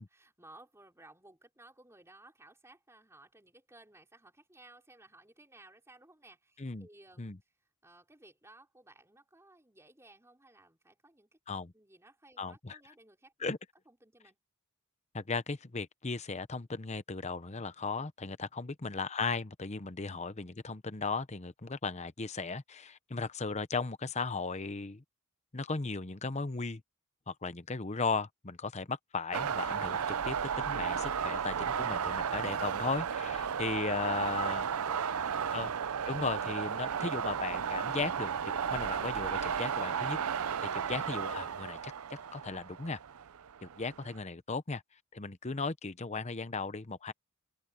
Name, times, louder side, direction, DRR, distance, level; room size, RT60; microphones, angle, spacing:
voice 1, 0.0-7.3 7.8-11.4 11.7-13.5 13.9-14.4, right 2 dB, 10° right, 4.8 m, -58 dB
voice 2, 12.4-12.8 13.4-13.6 15.1-25.0 25.5-26.8 27.3-34.7 35.5-35.7 36.1-38.3 38.7-40.2 40.6-43.0 43.6-44.8 45.1-47.1, left 4 dB, 30° left, 0.8 m, -36 dB
sound 1, 29.3-44.2, right 7 dB, 85° right, 0.6 m, -34 dB
open air
head